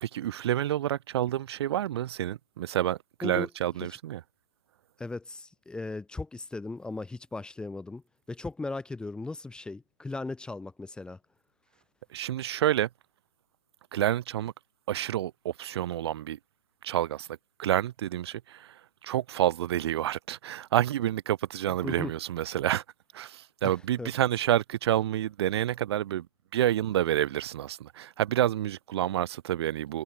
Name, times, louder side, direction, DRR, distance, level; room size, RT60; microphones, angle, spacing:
voice 1, 0.0-4.2 12.1-12.9 13.9-14.5 14.9-16.4 16.8-17.3 17.6-22.8 23.1-26.3 26.5-30.0, right 12 dB, 45° right, 1.0 m, -28 dB
voice 2, 5.0-11.2 21.8-22.1 23.6-23.7 24.0-24.1, left 3 dB, 5° left, 1.0 m, -37 dB
figure-of-eight pair, 130°, 18 cm